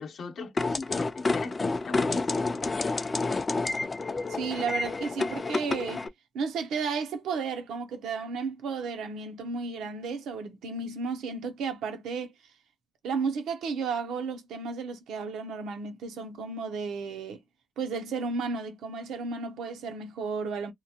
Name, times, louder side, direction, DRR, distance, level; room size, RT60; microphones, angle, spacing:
voice 1, 0.0-2.7, left 3 dB, 60° left, 0.8 m, -39 dB
sound 1, 0.6-6.1, left 3 dB, 25° left, 0.4 m, -29 dB
voice 2, 4.3-12.3 13.0-17.4 17.8-20.7, right 5 dB, 80° right, 0.6 m, -33 dB
2.7 x 2.2 x 2.8 m
cardioid pair, 90°, 0 cm